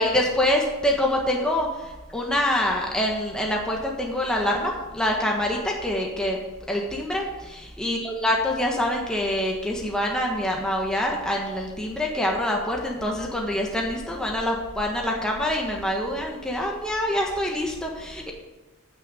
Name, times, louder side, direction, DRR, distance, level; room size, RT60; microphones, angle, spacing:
voice 1, 0.0-1.7 2.1-6.4 6.7-18.3, left 1 dB, 5° left, -1 dB, 1.3 m, -25 dB
9.8 x 6.3 x 7.6 m, 1.1 s
head